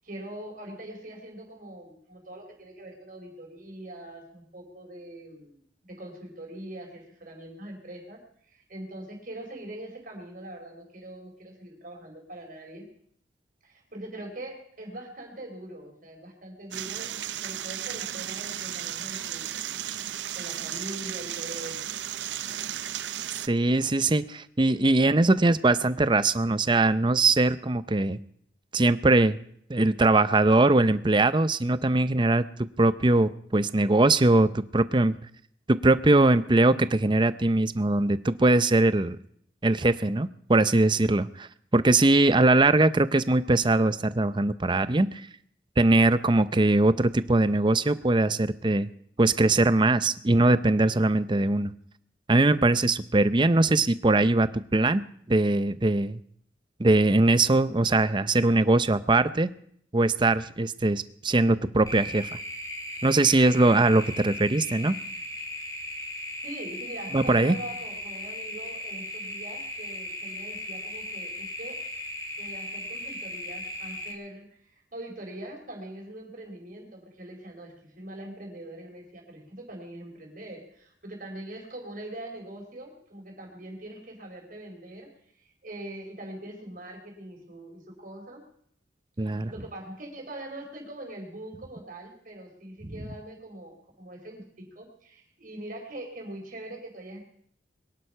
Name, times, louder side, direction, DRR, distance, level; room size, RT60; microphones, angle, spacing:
voice 1, 0.0-5.6 5.9-12.9 13.6-17.1 17.4-21.8 66.4-71.8 72.4-85.1 85.4-88.4 89.2-97.3, right 1 dB, 50° right, 1 dB, 4.6 m, -42 dB
sound 1, 16.7-23.5, right 11 dB, 90° right, 0.7 m, -34 dB
voice 2, 23.5-28.2 28.7-29.4 29.7-32.5 32.8-35.1 35.7-39.2 39.6-41.5 41.7-45.2 45.8-48.9 49.2-51.7 52.3-55.0 55.3-56.2 56.8-59.5 59.9-62.3 63.0-64.9 67.1-67.5 89.2-89.5, right 2 dB, 25° right, 14 dB, 0.6 m, -21 dB
sound 2, 61.9-74.1, left 1 dB, 20° left, 2.7 m, -37 dB
22.5 x 11.5 x 5.7 m, 0.66 s
head